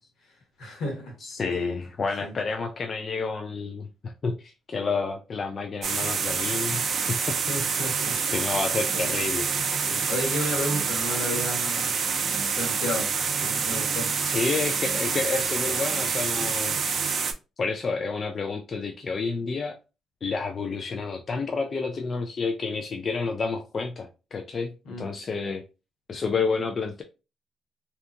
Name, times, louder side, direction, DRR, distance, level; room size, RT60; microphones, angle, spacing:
voice 1, 0.6-1.2 2.2-2.3 7.4-8.3 8.9-9.1 9.9-11.9 12.5-13.1 13.4-14.1 24.8-25.0, left 1 dB, 80° left, 1.3 m, -32 dB
voice 2, 1.2-7.7 8.3-9.5 14.2-16.8 17.6-19.8 20.2-24.7 25.0-25.6 26.1-27.0, left 4 dB, 45° left, 0.3 m, -30 dB
sound 1, 5.8-17.3, right 6 dB, 55° right, 0.4 m, -27 dB
2.8 x 2.3 x 2.4 m
cardioid pair, 90°, 0 cm